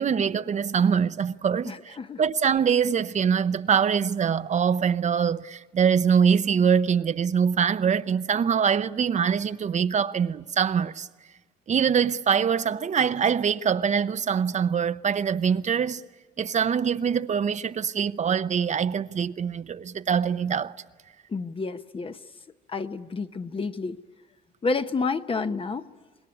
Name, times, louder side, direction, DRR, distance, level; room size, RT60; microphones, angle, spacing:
voice 1, 0.0-11.1 11.7-16.0 16.4-20.7, right 7 dB, 40° right, 0.7 m, -24 dB
voice 2, 1.7-2.2 21.3-22.2 22.7-24.0 24.6-25.9, left 4 dB, 30° left, 0.9 m, -29 dB
26.0 x 21.0 x 9.8 m
cardioid pair, 85°, 18 cm